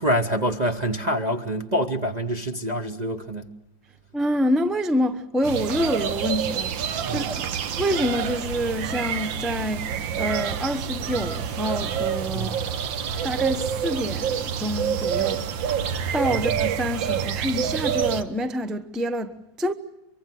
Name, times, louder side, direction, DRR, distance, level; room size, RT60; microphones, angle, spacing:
voice 1, 0.0-3.5 7.1-7.3 12.3-12.5, equal, 35° right, 0.7 m, -26 dB
voice 2, 4.1-6.7 7.1-7.5 7.8-12.7 13.2-15.7 16.1-19.7, equal, ahead, 0.4 m, -27 dB
sound 1, 5.4-18.2, right 8 dB, 75° right, 1.8 m, -27 dB
24.5 x 24.0 x 7.8 m
omnidirectional pair, 2.1 m